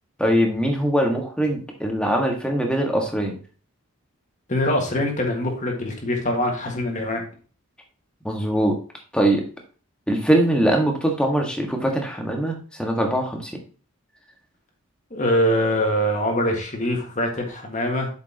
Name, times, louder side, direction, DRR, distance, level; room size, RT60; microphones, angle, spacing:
voice 1, 0.2-3.4 8.2-8.8 9.1-9.4 10.1-13.6, right 1 dB, 5° left, 2 dB, 1.6 m, -22 dB
voice 2, 4.5-7.2 15.1-18.1, equal, 35° left, 2 dB, 1.7 m, -23 dB
8.2 x 6.7 x 2.9 m, 0.38 s
head